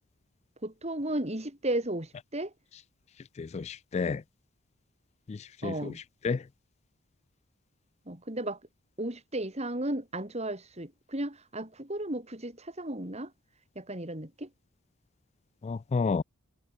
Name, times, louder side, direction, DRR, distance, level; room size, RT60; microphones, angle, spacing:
voice 1, 0.6-2.5 5.6-6.0 8.1-8.6 9.0-13.3 13.8-14.5, right 1 dB, 30° right, 3.9 m, -34 dB
voice 2, 3.4-4.2 5.3-5.4 5.6-5.9 6.2-6.4 15.6-16.2, left 4 dB, 30° left, 0.3 m, -30 dB
head